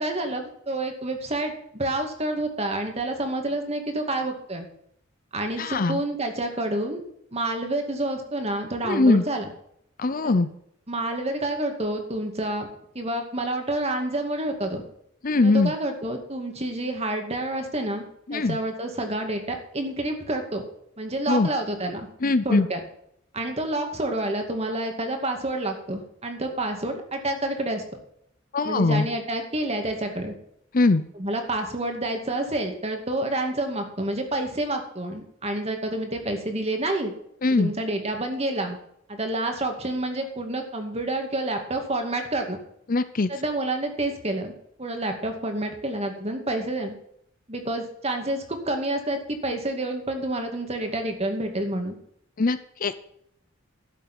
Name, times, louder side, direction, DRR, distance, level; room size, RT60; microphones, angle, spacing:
voice 1, 0.0-4.7 5.3-7.0 7.3-9.5 10.2-10.4 10.9-12.7 12.9-14.8 15.4-18.0 18.3-20.6 21.0-22.1 22.4-22.8 23.3-27.8 28.6-30.3 31.1-37.1 37.5-38.8 39.1-42.6 43.3-44.5 44.8-46.9 47.5-52.0, right 1 dB, 30° right, 4 dB, 2.3 m, -28 dB
voice 2, 5.6-6.0 8.8-9.2 10.0-10.5 15.2-15.7 18.3-18.6 21.3-21.5 22.2-22.7 28.5-29.1 30.7-31.0 37.4-37.7 42.9-43.3 52.4-52.9, left 3 dB, 40° left, 13 dB, 0.6 m, -21 dB
12.0 x 8.1 x 6.2 m, 0.71 s
head